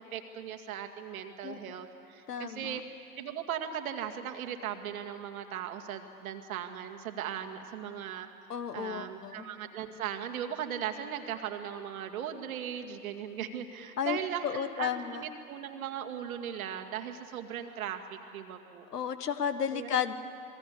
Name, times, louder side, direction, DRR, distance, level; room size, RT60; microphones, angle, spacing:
voice 1, 0.0-2.8 3.2-8.3 8.7-18.9 19.7-19.9, right 9 dB, 60° right, 6 dB, 2.1 m, -38 dB
voice 2, 2.3-2.8 8.5-9.5 14.0-14.2 14.4-15.2 18.9-20.1, left 8 dB, 80° left, 11 dB, 1.4 m, -33 dB
28.0 x 20.5 x 8.4 m, 2.8 s
figure-of-eight pair, 95°, 47 cm